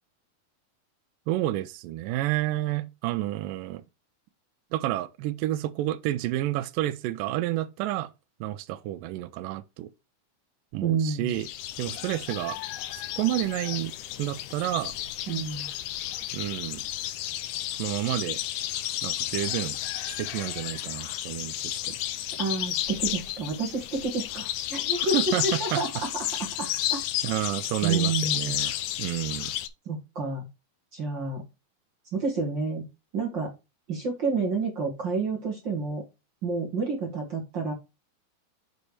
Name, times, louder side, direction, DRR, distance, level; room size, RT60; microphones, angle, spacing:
voice 1, 1.3-3.8 4.7-8.1 8.4-9.9 10.7-11.5 11.8-12.6 12.9-13.9 14.2-14.9 16.3-16.8 17.7-18.4 19.0-19.8 20.2-22.0 25.0-25.4 25.7-25.8 27.2-28.7 29.0-29.5, right 15 dB, 80° right, 2.0 m, -30 dB
voice 2, 10.8-11.3 15.3-15.7 22.4-25.1 25.4-26.1 26.4-27.0 27.8-28.5 29.8-30.4 30.9-31.4 32.1-32.9 33.1-33.5 33.9-36.0 36.4-37.7, right 4 dB, 45° right, 1.6 m, -29 dB
sound 1, 11.3-29.7, left 13 dB, 85° left, 1.8 m, -32 dB
6.7 x 4.1 x 4.7 m
omnidirectional pair, 4.3 m